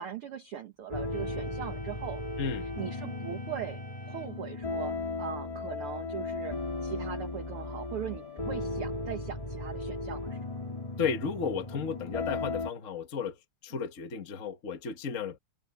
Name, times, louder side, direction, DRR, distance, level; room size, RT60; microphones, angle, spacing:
voice 1, 0.0-2.2 2.8-3.8 4.1-10.4 13.7-13.8, right 8 dB, 55° right, 1.8 m, -40 dB
sound 1, 0.9-12.7, left 2 dB, 15° left, 1.5 m, -36 dB
Organ, 1.1-5.0, equal, 5° right, 5.2 m, -51 dB
voice 2, 2.4-2.7 11.0-13.4 13.6-15.4, left 6 dB, 50° left, 0.9 m, -33 dB
omnidirectional pair, 3.7 m